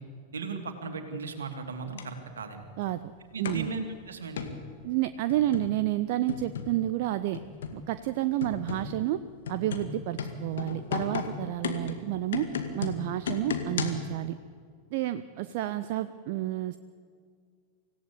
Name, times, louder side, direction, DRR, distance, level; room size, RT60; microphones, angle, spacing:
voice 1, 0.3-2.6 3.3-4.5, right 4 dB, 70° right, 6 dB, 2.7 m, -37 dB
sound 1, 2.0-2.1 3.4-3.7 4.4-4.6 5.3-5.8 6.3-6.8 7.3-7.8 8.4-8.9 9.5-14.1, left 6 dB, 60° left, 2.1 m, -34 dB
voice 2, 3.4-3.7 4.8-7.4 7.7-9.2 9.5-12.5 12.7-14.4 14.9-16.8, right 14 dB, 50° right, 12 dB, 0.7 m, -30 dB
25.5 x 16.5 x 8.6 m, 2.1 s
figure-of-eight pair, 90°, 0 cm